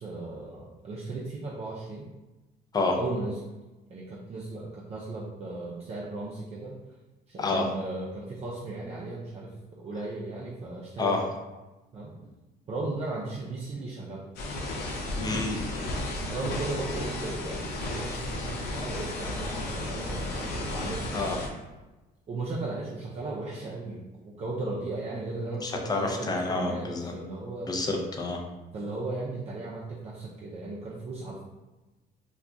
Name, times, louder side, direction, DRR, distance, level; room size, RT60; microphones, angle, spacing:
voice 1, 0.0-2.1 2.9-3.5 3.9-6.8 7.3-11.2 11.9-12.3 12.7-14.2 16.2-21.3 22.3-24.0 24.4-27.7 28.7-31.4, right 2 dB, 40° right, -5 dB, 0.5 m, -36 dB
sound 1, 14.4-21.5, left 2 dB, 85° left, 0.6 m, -33 dB
voice 2, 15.2-16.0 21.1-21.3 25.6-27.1 27.7-28.4, left 3 dB, 25° left, 2 dB, 0.5 m, -29 dB
2.3 x 2.3 x 3.8 m, 1.1 s
cardioid pair, 110°, 17 cm